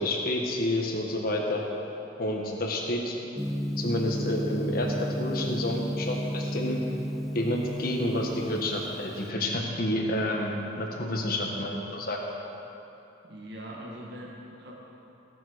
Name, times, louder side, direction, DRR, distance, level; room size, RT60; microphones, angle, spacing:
voice 1, 0.0-1.6 2.2-3.1 3.8-6.8 7.3-12.2, left 1 dB, 50° left, 0 dB, 1.6 m, -29 dB
Gong, 3.4-9.2, equal, ahead, 0.4 m, -33 dB
voice 2, 13.3-14.7, equal, 55° right, -3 dB, 1.6 m, -42 dB
17.0 x 7.2 x 6.3 m, 3.0 s
head